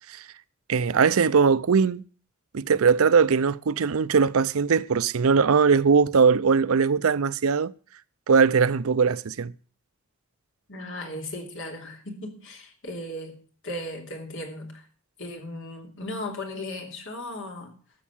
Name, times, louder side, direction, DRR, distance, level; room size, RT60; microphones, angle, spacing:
voice 1, 0.7-2.0 2.5-7.7 8.3-9.5, right 5 dB, 70° right, 0.5 m, -20 dB
voice 2, 10.7-14.9 15.2-17.8, left 1 dB, 65° left, 2.9 m, -36 dB
13.0 x 7.2 x 7.3 m
head